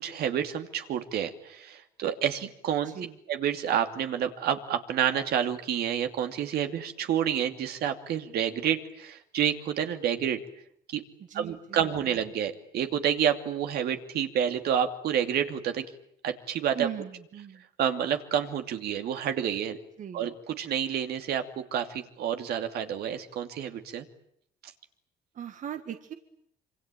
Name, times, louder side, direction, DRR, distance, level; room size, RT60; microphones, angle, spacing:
voice 1, 0.0-2.9 3.3-10.4 10.9-11.0 11.3-15.8 16.2-16.9 17.8-19.8 20.1-24.0, right 9 dB, 70° right, 7 dB, 2.7 m, -29 dB
voice 2, 2.8-3.2 11.3-12.2 16.7-17.6 20.0-20.3 25.3-26.1, right 9 dB, 50° right, 8 dB, 1.7 m, -39 dB
26.0 x 25.0 x 9.1 m, 0.70 s
cardioid pair, 110°, 17 cm